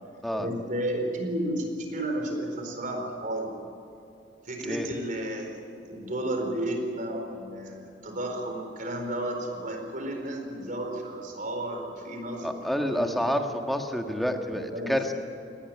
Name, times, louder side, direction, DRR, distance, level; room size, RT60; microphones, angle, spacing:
voice 1, 0.4-3.6 4.4-13.3 14.5-15.1, right 1 dB, 50° right, 3 dB, 4.3 m, -33 dB
voice 2, 12.4-15.1, equal, ahead, 4 dB, 1.6 m, -28 dB
19.0 x 18.5 x 9.7 m, 2.7 s
head